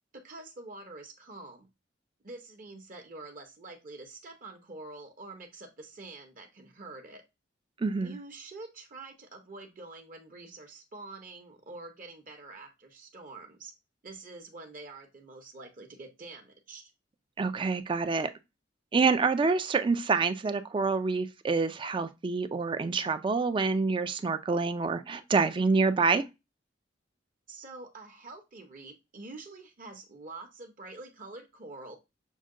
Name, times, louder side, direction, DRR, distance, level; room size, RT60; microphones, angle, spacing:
voice 1, 0.2-1.7 2.2-7.2 8.0-13.7 14.0-16.9 27.5-32.0, right 3 dB, 45° right, 0.8 m, -46 dB
voice 2, 7.8-8.1 17.4-18.3 18.9-26.2, right 4 dB, 25° right, 0.3 m, -27 dB
6.3 x 2.2 x 3.7 m
head